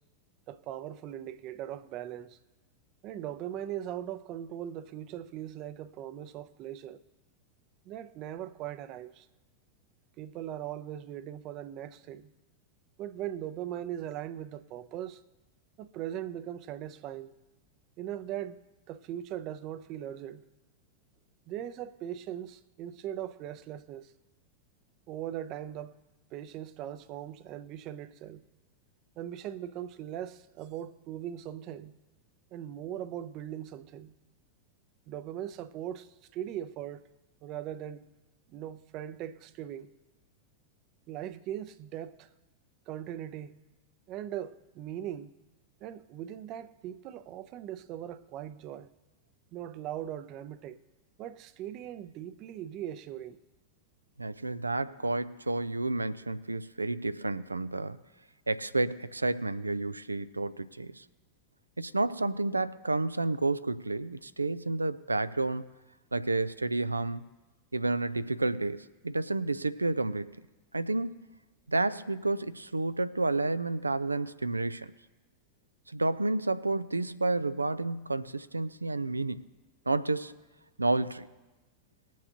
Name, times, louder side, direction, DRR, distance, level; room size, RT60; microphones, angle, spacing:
voice 1, 0.5-2.4 3.0-7.0 7.8-9.3 10.2-12.3 13.0-15.2 15.8-17.3 18.0-18.6 18.9-20.4 21.5-24.1 25.1-26.0 26.3-28.4 29.2-31.9 32.5-34.2 35.1-37.1 37.4-38.1 38.5-39.9 41.1-42.3 42.9-43.6 44.1-45.3 45.8-48.9 49.5-50.8 51.2-53.4, right 11 dB, 40° right, 0.6 m, -40 dB
voice 2, 54.2-58.0 58.5-61.0 61.8-65.7 66.1-67.3 67.7-70.4 70.7-71.2 71.7-74.9 75.9-79.4 79.9-80.3 80.8-81.3, right 2 dB, 80° right, 0.4 m, -30 dB
20.5 x 7.4 x 2.9 m
figure-of-eight pair, 90°, 0 cm